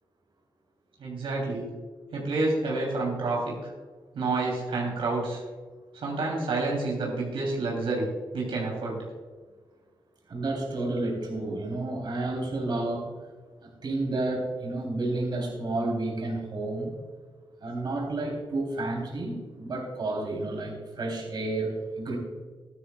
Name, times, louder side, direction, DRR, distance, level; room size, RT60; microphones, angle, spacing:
voice 1, 1.0-1.7 2.1-3.6 4.1-5.4 6.0-8.1 8.3-9.0, right 3 dB, 90° right, -2 dB, 3.2 m, -28 dB
voice 2, 10.3-13.1 13.6-16.9 17.6-22.2, right 2 dB, 55° right, -1 dB, 3.5 m, -31 dB
14.0 x 12.5 x 2.4 m, 1.4 s
wide cardioid pair, 110°, 9 cm